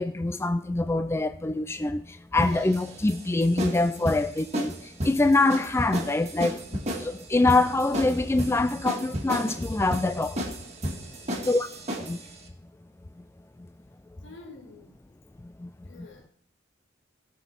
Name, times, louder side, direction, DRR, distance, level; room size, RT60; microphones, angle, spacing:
voice 1, 0.0-2.0 2.3-4.7 5.0-6.6 7.0-10.4 11.5-11.7 12.0-12.2 15.6-15.7, left 2 dB, 15° left, 0.3 m, -24 dB
sound 1, 2.4-12.3, equal, 35° right, 1.9 m, -33 dB
voice 2, 11.3-11.7 14.2-15.0 15.8-16.3, left 3 dB, 75° left, 2.7 m, -47 dB
17.5 x 6.1 x 4.4 m
head